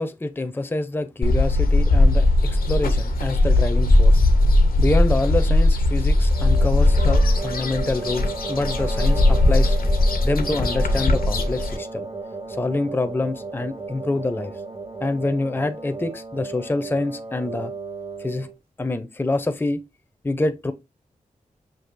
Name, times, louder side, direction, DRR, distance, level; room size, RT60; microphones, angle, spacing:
voice 1, 0.0-4.2 4.8-9.8 10.2-12.1 12.5-14.5 15.0-17.7 18.2-18.5 18.8-19.8 20.2-20.7, left 2 dB, 15° left, 0.5 m, -26 dB
sound 1, 1.2-11.8, left 2 dB, 85° left, 0.7 m, -18 dB
sound 2, 6.3-18.6, right 3 dB, 40° right, 0.8 m, -34 dB
6.0 x 2.7 x 2.5 m
wide cardioid pair, 65°, 15 cm